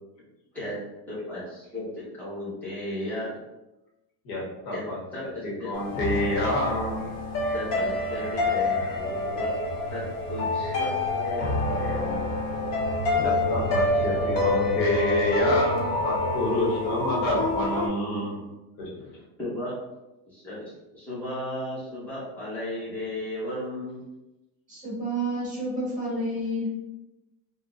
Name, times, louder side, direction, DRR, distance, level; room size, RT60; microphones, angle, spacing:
voice 1, 1.1-3.4 4.7-4.8 5.1-5.7 7.5-9.6 9.9-12.3 15.5-15.6 19.0-19.8 20.3-24.0, left 1 dB, 5° left, -10 dB, 1.1 m, -35 dB
voice 2, 4.2-5.0 5.4-7.1 7.4-7.5 8.1-9.0 10.6-10.8 11.8-12.0 13.1-18.4 18.8-18.9, left 1 dB, 60° left, -3 dB, 1.2 m, -28 dB
sound 1, 5.7-17.9, left 2 dB, 35° left, 0.6 m, -27 dB
voice 3, 24.7-26.7, right 1 dB, 15° right, -7 dB, 1.4 m, -29 dB
3.8 x 2.4 x 2.5 m, 0.99 s
cardioid pair, 155°, 46 cm